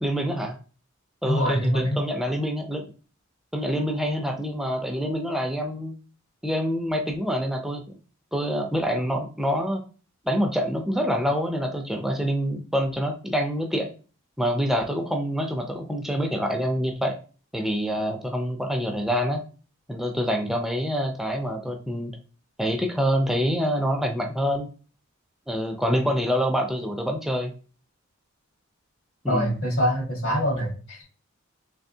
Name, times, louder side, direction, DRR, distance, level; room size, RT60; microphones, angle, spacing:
voice 1, 0.0-0.6 1.2-2.8 3.5-5.9 6.4-8.0 8.3-9.8 10.2-13.9 14.4-17.2 17.5-19.4 19.9-22.1 22.6-24.7 25.5-27.5 29.2-29.5, equal, ahead, 2 dB, 0.4 m, -26 dB
voice 2, 1.3-2.0 29.3-31.0, equal, 80° left, -1 dB, 1.6 m, -24 dB
3.4 x 3.4 x 2.7 m, 0.37 s
head